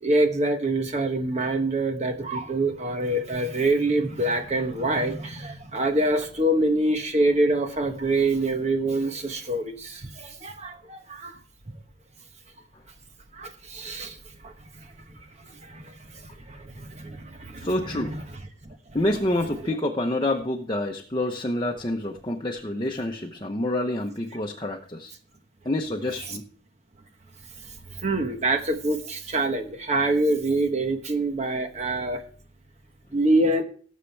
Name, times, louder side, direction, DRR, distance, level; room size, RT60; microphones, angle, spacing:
voice 1, 0.0-11.4 13.3-14.2 14.4-14.9 15.4-18.7 26.3-26.4 27.6-32.2 33.1-33.6, right 2 dB, 35° right, 6 dB, 1.1 m, -26 dB
voice 2, 17.6-18.1 18.9-25.1 25.6-26.4, left 1 dB, 25° left, 2 dB, 0.9 m, -27 dB
18.5 x 7.5 x 3.4 m, 0.43 s
head